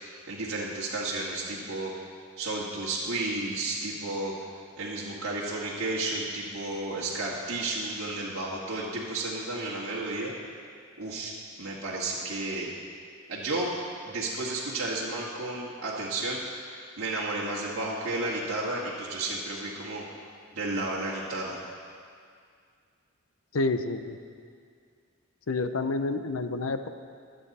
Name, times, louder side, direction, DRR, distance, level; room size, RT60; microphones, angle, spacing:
voice 1, 0.1-1.9 2.4-4.3 4.8-10.3 11.0-12.7 13.3-13.7 14.0-20.1 20.5-21.6, right 2 dB, 65° right, -7 dB, 1.9 m, -32 dB
voice 2, 23.5-24.2 25.5-26.9, left 3 dB, 70° left, 9 dB, 0.7 m, -29 dB
24.0 x 8.1 x 4.2 m, 2.2 s
head